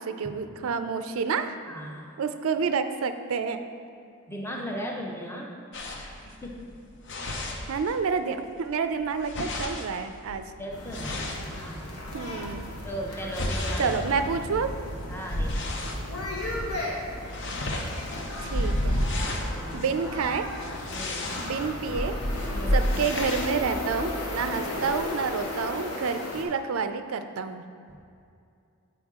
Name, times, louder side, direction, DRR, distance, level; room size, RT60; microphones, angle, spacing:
voice 1, 0.0-1.5 2.2-3.6 7.7-10.5 12.1-12.6 13.8-14.7 18.4-19.1 19.7-20.5 21.4-22.2 22.7-27.6, right 5 dB, 70° right, 9 dB, 0.4 m, -29 dB
voice 2, 1.7-2.2 4.3-5.6 6.0-6.7 10.6-11.9 12.8-13.9 15.1-16.3 19.5-19.8 20.9-21.3 22.5-22.9 24.5-24.7 27.9-28.0, equal, 10° left, 0 dB, 0.6 m, -38 dB
sound 1, 5.7-8.2 8.5-12.2 12.7-16.1 16.5-16.8 17.0-23.6, left 1 dB, 50° left, 0.6 m, -32 dB
sound 2, 10.7-26.4, left 1 dB, 90° left, 1.1 m, -35 dB
8.8 x 4.6 x 3.6 m, 2.4 s
head